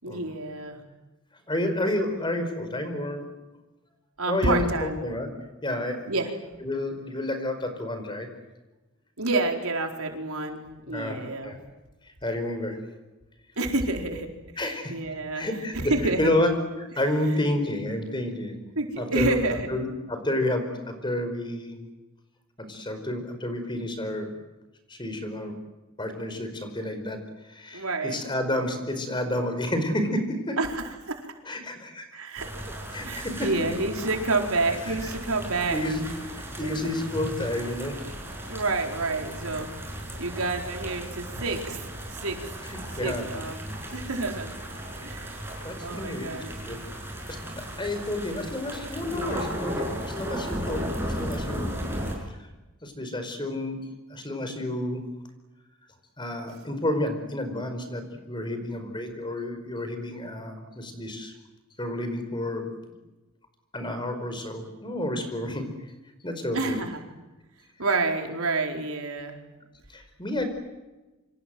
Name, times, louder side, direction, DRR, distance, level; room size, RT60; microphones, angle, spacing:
voice 1, 0.0-0.8 2.0-2.2 4.2-5.0 6.1-6.3 9.2-11.5 13.6-14.3 14.5-15.5 15.7-16.2 18.8-19.7 27.7-28.2 30.6-31.3 32.1-32.5 33.0-35.8 36.6-36.7 38.5-39.7 40.2-42.5 42.9-43.6 43.9-44.5 45.0-45.4 45.8-46.5 66.5-67.0 67.8-69.4, right 3 dB, 85° right, 3 dB, 4.5 m, -29 dB
voice 2, 1.5-3.3 4.2-5.3 5.6-6.1 6.6-8.3 10.9-11.6 12.2-12.8 14.6-15.0 15.3-15.9 16.2-18.7 19.0-19.3 19.7-21.8 22.6-24.3 24.9-25.5 26.0-27.2 27.4-30.6 31.5-32.2 32.9-33.5 34.9-35.1 35.7-36.0 36.3-38.0 42.7-43.2 45.6-46.8 47.3-52.4 52.8-53.8 54.1-55.0 56.2-61.3 61.8-62.7 63.7-65.7 66.2-66.8 69.9-70.4, left 1 dB, 20° left, 7 dB, 4.9 m, -30 dB
sound 1, 32.4-52.1, equal, 10° right, 6.6 m, -35 dB
28.0 x 26.5 x 7.8 m, 1.1 s
head